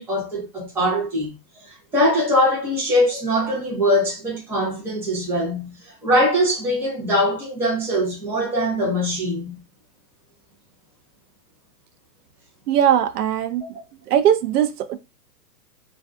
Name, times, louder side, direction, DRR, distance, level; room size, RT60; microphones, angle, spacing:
voice 1, 0.0-1.3 1.6-9.6, equal, 5° right, 0.6 m, -22 dB
voice 2, 12.7-13.6 14.1-15.0, right 10 dB, 75° right, 0.6 m, -19 dB
2.5 x 2.4 x 2.2 m
hypercardioid pair, 140°, 47 cm